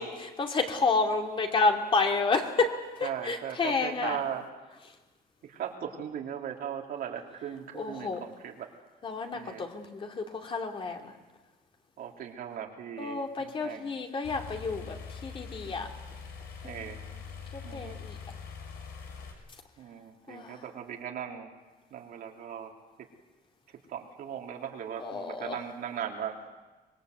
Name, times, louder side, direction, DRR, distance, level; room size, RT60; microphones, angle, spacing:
voice 1, 0.0-4.2 7.7-8.2 9.0-11.1 13.0-15.9 16.6-16.8 17.5-18.2 20.3-20.5 25.0-25.6, left 4 dB, 35° left, 3 dB, 2.6 m, -30 dB
voice 2, 3.0-4.4 5.4-8.7 9.3-9.6 12.0-13.9 16.6-17.0 17.6-18.0 19.8-21.5 21.9-22.7 23.9-26.4, right 8 dB, 70° right, 1 dB, 3.3 m, -38 dB
sound 1, 14.2-19.3, left 6 dB, 85° left, 5.5 m, -43 dB
25.5 x 22.0 x 8.0 m, 1.2 s
cardioid pair, 155°, 16 cm